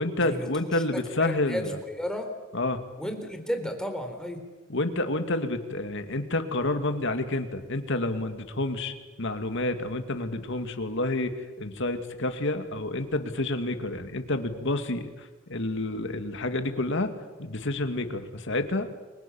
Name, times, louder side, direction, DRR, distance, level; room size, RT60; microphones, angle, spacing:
voice 1, 0.0-1.8 2.5-2.8 4.7-17.1 17.4-18.9, left 2 dB, 65° left, 8 dB, 2.4 m, -29 dB
voice 2, 1.2-2.3 3.0-4.4, equal, 5° left, 5 dB, 3.7 m, -33 dB
30.0 x 23.5 x 7.2 m, 1.2 s
head